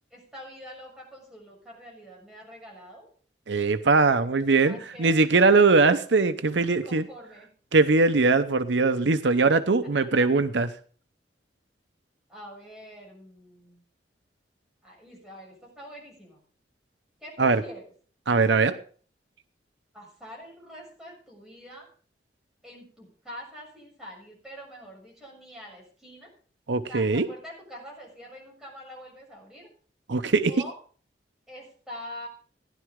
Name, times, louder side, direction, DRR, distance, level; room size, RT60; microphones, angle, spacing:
voice 1, 0.1-3.1 3.5-3.8 4.2-5.3 6.7-7.5 12.3-13.8 14.8-16.4 17.2-17.9 19.9-21.9 22.6-26.3 26.9-29.7 30.5-30.8 31.5-32.3, equal, 5° right, -3 dB, 6.8 m, -45 dB
voice 2, 3.5-7.0 7.7-10.7 17.4-17.6 18.3-18.7 26.7-27.3 30.1-30.5, right 3 dB, 85° right, 11 dB, 0.8 m, -21 dB
16.0 x 11.0 x 3.7 m, 0.42 s
head